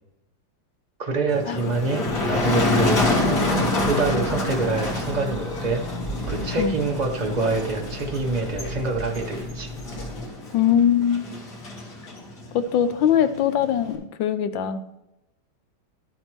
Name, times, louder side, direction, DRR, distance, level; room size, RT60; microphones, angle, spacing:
voice 1, 1.0-3.0 3.8-5.8 6.3-9.7, right 3 dB, 65° right, 1 dB, 0.4 m, -26 dB
Motor vehicle (road), 1.3-13.9, left 2 dB, 55° left, 2.5 m, -28 dB
sound 1, 2.1-10.3, equal, 40° left, 0.4 m, -35 dB
voice 2, 10.5-11.2 12.5-14.8, left 9 dB, 85° left, 10 dB, 1.4 m, -21 dB
12.5 x 7.7 x 3.1 m, 0.88 s
omnidirectional pair, 2.1 m